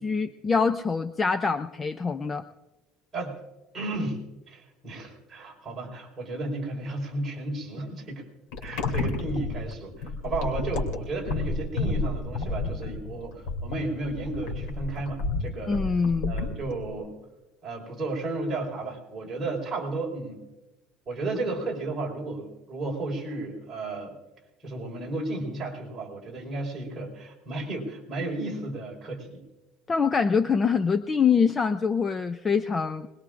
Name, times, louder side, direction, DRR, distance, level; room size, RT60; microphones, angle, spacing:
voice 1, 0.0-2.4 15.7-16.3 29.9-33.1, left 5 dB, 20° left, 10 dB, 0.4 m, -24 dB
voice 2, 3.7-8.2 8.6-15.8 16.3-17.2 17.6-20.4 21.1-24.1 24.6-29.4, right 2 dB, 15° right, -4 dB, 4.5 m, -33 dB
sound 1, 8.5-16.9, left 3 dB, 90° left, 2.9 m, -31 dB
24.5 x 21.0 x 2.6 m, 1.1 s
cardioid pair, 170°, 0 cm